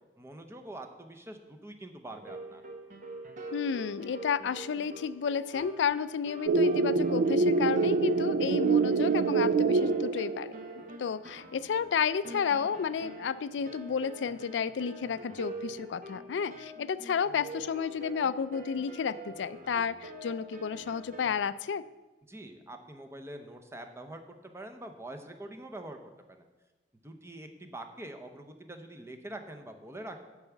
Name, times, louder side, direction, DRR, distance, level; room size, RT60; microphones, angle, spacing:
voice 1, 0.2-2.6 22.3-26.0 26.3-26.5 27.0-30.2, right 1 dB, 15° right, 6 dB, 0.8 m, -44 dB
sound 1, 2.2-21.4, right 1 dB, 45° right, 1.1 m, -45 dB
voice 2, 3.5-10.5 11.0-21.8, left 6 dB, 90° left, 16 dB, 0.4 m, -32 dB
sound 2, 6.5-10.8, right 4 dB, 70° right, 0.4 m, -25 dB
9.1 x 4.8 x 7.0 m, 1.1 s
head